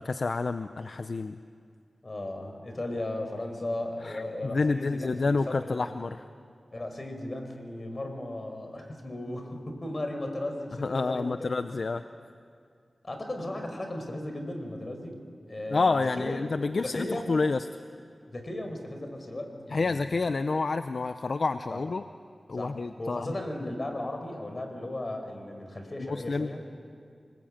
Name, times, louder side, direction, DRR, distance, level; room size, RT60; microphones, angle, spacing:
voice 1, 0.0-1.4 4.0-6.2 10.8-12.0 15.7-17.7 19.7-22.0 22.5-23.4 26.0-26.5, left 3 dB, 70° left, 10 dB, 0.6 m, -29 dB
voice 2, 2.0-5.9 6.7-11.5 13.0-15.2 15.5-16.4 16.8-17.3 18.3-20.1 21.7-21.8 22.5-26.6, left 1 dB, 45° left, 4 dB, 4.7 m, -36 dB
26.0 x 20.5 x 8.8 m, 2.2 s
cardioid pair, 55°, 0 cm